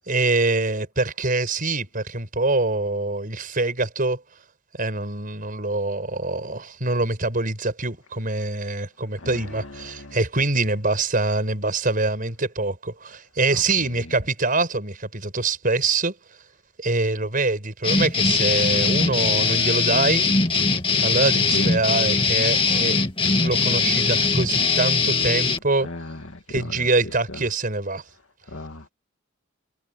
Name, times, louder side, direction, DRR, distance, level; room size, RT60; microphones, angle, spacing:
voice 1, 0.1-4.2 4.7-16.1 16.8-20.3 21.0-23.0 23.4-25.9 26.5-28.0, right 3 dB, 40° right, 5.7 m, -24 dB
voice 2, 9.2-10.2 13.5-14.1 21.4-21.7 25.8-27.4 28.5-28.9, left 2 dB, 75° left, 2.1 m, -36 dB
sound 1, 17.8-25.6, left 4 dB, 25° left, 2.2 m, -21 dB
head